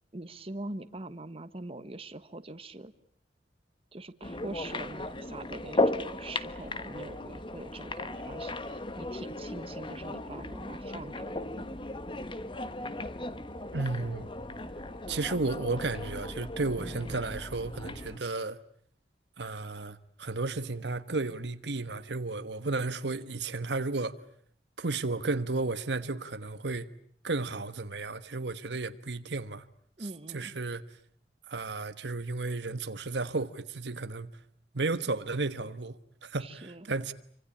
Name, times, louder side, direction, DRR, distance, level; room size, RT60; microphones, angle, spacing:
voice 1, 0.1-2.9 3.9-11.6 16.8-17.2 30.0-30.5 36.3-36.9, right 2 dB, 35° right, 1.3 m, -43 dB
sound 1, 4.2-18.2, left 2 dB, 30° left, 1.4 m, -36 dB
voice 2, 13.7-14.3 15.1-18.6 19.4-24.2 24.8-26.9 27.2-29.6 30.3-30.8 31.5-34.3 34.7-37.1, right 3 dB, 75° right, 1.3 m, -33 dB
27.5 x 25.5 x 8.6 m
head